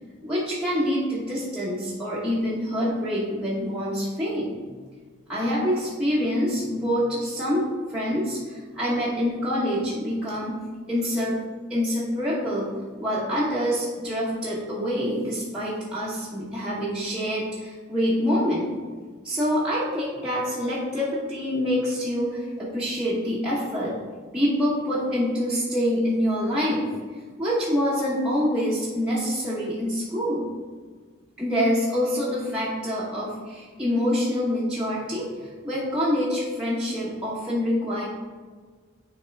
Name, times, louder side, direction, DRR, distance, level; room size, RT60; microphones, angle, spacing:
voice 1, 0.2-4.7 5.3-10.6 10.9-11.4 11.7-18.7 19.2-24.0 24.3-26.9 27.4-30.5 31.4-38.0, equal, 5° right, -10 dB, 1.1 m, -26 dB
9.2 x 3.7 x 3.5 m, 1.5 s
head